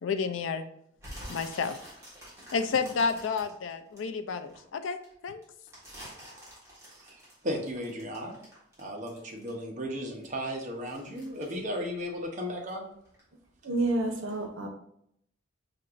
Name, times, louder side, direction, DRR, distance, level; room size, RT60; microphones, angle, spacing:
voice 1, 0.0-0.7 1.3-1.8 2.5-5.0 5.2-5.4, left 5 dB, 75° left, 9 dB, 0.4 m, -30 dB
sound 1, 1.0-4.6 5.0-9.8 10.1-12.8 13.1-13.4 13.9-14.0, equal, 15° right, 1.5 m, -48 dB
voice 2, 6.9-8.3 8.8-12.9, equal, 40° right, 0 dB, 0.8 m, -35 dB
voice 3, 13.6-14.7, right 2 dB, 90° right, 3 dB, 0.8 m, -29 dB
5.1 x 2.9 x 2.5 m, 0.72 s
head